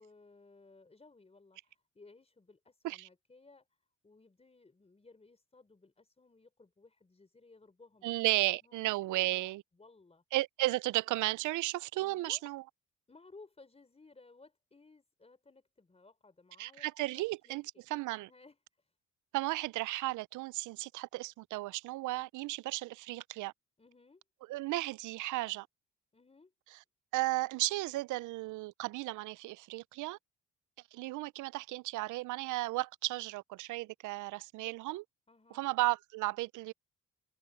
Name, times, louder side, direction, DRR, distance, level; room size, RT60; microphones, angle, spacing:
voice 1, 0.0-3.7 4.0-8.3 8.6-10.2 12.0-12.5 13.1-16.9 17.1-17.6 18.3-18.9 23.8-24.2 26.1-26.5 35.3-35.7, left 3 dB, 20° left, 4.6 m, -59 dB
voice 2, 8.0-9.6 10.3-12.6 16.6-17.6 17.9-18.3 19.3-23.5 24.5-25.7 27.1-30.2 30.9-35.0 35.5-36.7, right 18 dB, 80° right, 0.5 m, -34 dB
cardioid pair, 90°, 30 cm